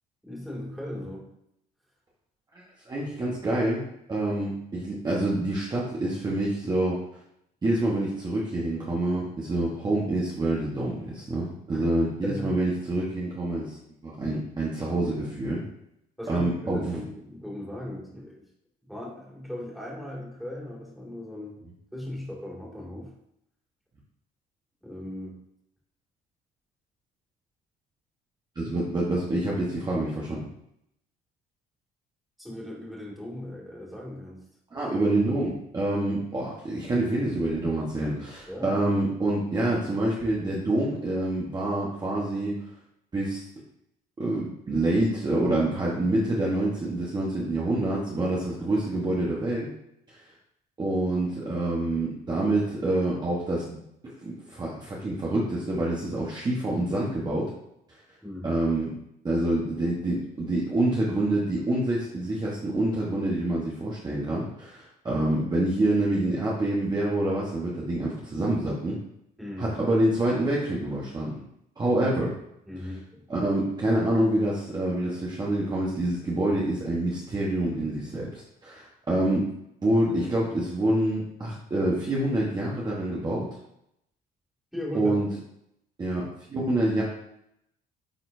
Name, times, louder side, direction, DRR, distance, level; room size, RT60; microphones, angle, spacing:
voice 1, 0.2-1.3 11.7-11.9 12.2-12.5 16.2-18.5 18.8-21.6 21.9-23.2 24.8-25.4 32.4-34.5 34.8-34.9 38.5-38.8 58.2-58.6 69.4-69.7 72.6-73.3 84.7-85.2, left 1 dB, ahead, -5 dB, 2.3 m, -38 dB
voice 2, 2.5-7.0 7.6-13.8 14.0-15.6 16.3-17.0 28.5-30.5 34.7-42.6 43.1-43.4 44.2-49.7 50.1-50.2 50.8-57.5 58.4-58.9 59.2-69.0 69.6-71.4 71.8-72.3 73.3-79.5 79.8-83.5 84.9-85.3 86.0-87.0, right 1 dB, 25° right, -5 dB, 1.3 m, -27 dB
9.1 x 4.2 x 2.7 m, 0.78 s
cardioid pair, 110°, 17 cm